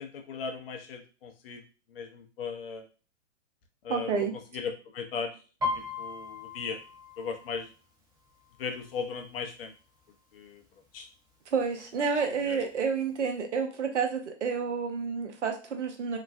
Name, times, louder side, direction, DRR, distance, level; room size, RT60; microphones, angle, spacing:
voice 1, 0.0-1.6 1.9-2.8 3.8-5.3 5.7-6.8 7.2-7.7 8.6-9.7 10.3-10.6 10.9-11.1 12.4-12.6, left 5 dB, 55° left, 4 dB, 0.7 m, -37 dB
voice 2, 3.9-4.3 11.5-16.2, right 5 dB, 75° right, 4 dB, 0.8 m, -29 dB
Piano, 5.6-9.3 9.6-10.0 10.4-11.0 11.6-11.7 11.9-12.9 13.3-13.4, left 3 dB, 10° right, 1.0 m, -37 dB
3.0 x 2.1 x 2.5 m, 0.37 s
figure-of-eight pair, 110°, 36 cm